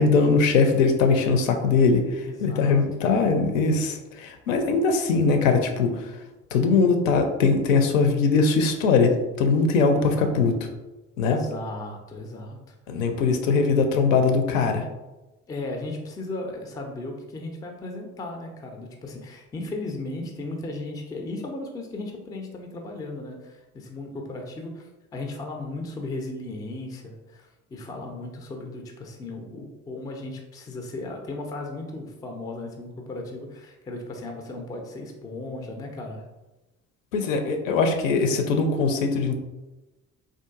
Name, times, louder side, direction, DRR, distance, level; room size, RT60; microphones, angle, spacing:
voice 1, 0.0-5.9 6.5-10.6 11.2-11.4 12.9-14.9 37.1-39.3, left 4 dB, 70° left, 6 dB, 0.5 m, -21 dB
voice 2, 2.2-3.1 9.9-10.5 11.2-12.7 15.5-36.2, left 2 dB, 10° left, 3 dB, 0.3 m, -36 dB
3.6 x 2.4 x 2.3 m, 1.1 s
figure-of-eight pair, 50°, 41 cm